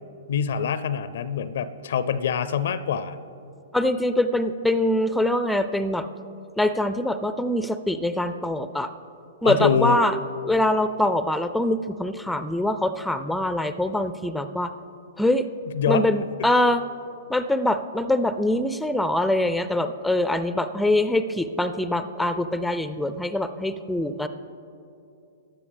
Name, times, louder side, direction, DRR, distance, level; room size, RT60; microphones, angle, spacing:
voice 1, 0.3-3.2 9.4-10.0 15.7-16.1 16.4-16.5, left 7 dB, 65° left, 14 dB, 0.5 m, -24 dB
voice 2, 3.7-6.1 6.6-8.9 9.4-10.2 10.4-14.7 15.2-15.4 15.9-16.8 17.3-24.3, left 1 dB, 5° left, 11 dB, 0.4 m, -23 dB
15.0 x 9.8 x 3.4 m, 2.7 s
figure-of-eight pair, 115°, 0 cm